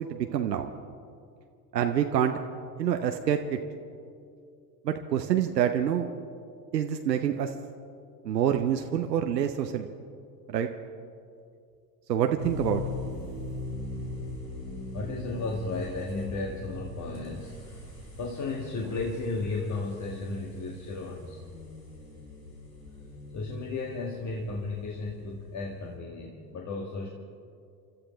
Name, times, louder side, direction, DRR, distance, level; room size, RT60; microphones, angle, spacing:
voice 1, 0.1-0.7 1.7-2.4 2.8-3.6 4.8-6.1 6.7-7.5 8.2-9.9 10.5-10.7 12.1-12.8, right 9 dB, 80° right, 5 dB, 0.9 m, -26 dB
sound 1, 12.4-26.0, left 2 dB, 85° left, 3.4 m, -41 dB
voice 2, 14.5-17.6 18.2-21.4 23.3-27.1, left 3 dB, 35° left, -1 dB, 1.8 m, -34 dB
30.0 x 13.0 x 3.4 m, 2.4 s
figure-of-eight pair, 70°, 49 cm